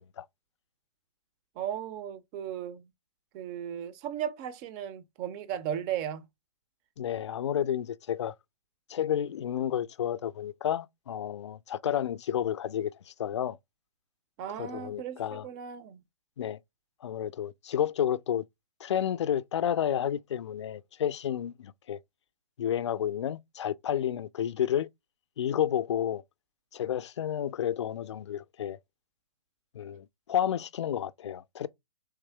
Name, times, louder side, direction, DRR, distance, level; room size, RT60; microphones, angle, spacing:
voice 1, 1.6-2.9 3.3-6.3 14.4-16.0, right 10 dB, 20° right, 0.4 m, -36 dB
voice 2, 7.0-8.3 8.9-13.6 14.6-15.4 16.4-16.6 17.0-18.4 18.8-22.0 22.6-24.9 25.4-26.2 26.7-28.8 29.7-31.7, left 10 dB, 50° left, 0.4 m, -31 dB
3.5 x 3.1 x 4.5 m
figure-of-eight pair, 125°, 18 cm